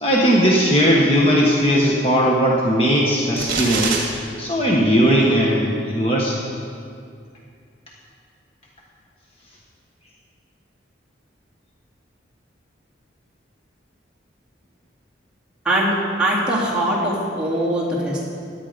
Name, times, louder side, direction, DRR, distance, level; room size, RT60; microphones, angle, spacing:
voice 1, 0.0-4.0 4.4-6.4, equal, 30° left, -3 dB, 1.3 m, -18 dB
sound 1, 3.4-4.0, right 4 dB, 50° right, 2.3 m, -23 dB
voice 2, 15.7-18.3, right 1 dB, 5° right, -9 dB, 3.6 m, -21 dB
16.5 x 11.5 x 5.3 m, 2.3 s
head